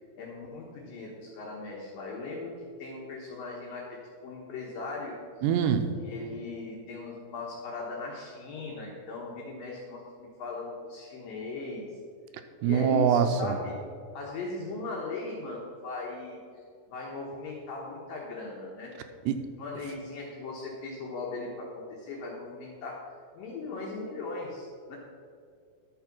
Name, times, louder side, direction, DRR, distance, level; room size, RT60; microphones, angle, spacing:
voice 1, 0.2-5.1 6.0-11.9 12.6-13.8 14.1-16.4 16.9-18.9 19.6-23.0 23.3-25.0, left 3 dB, 70° left, -3 dB, 2.3 m, -38 dB
voice 2, 5.4-5.9 12.6-13.6 19.3-19.5, right 8 dB, 80° right, 8 dB, 2.6 m, -24 dB
12.0 x 6.7 x 5.9 m, 2.3 s
omnidirectional pair, 5.2 m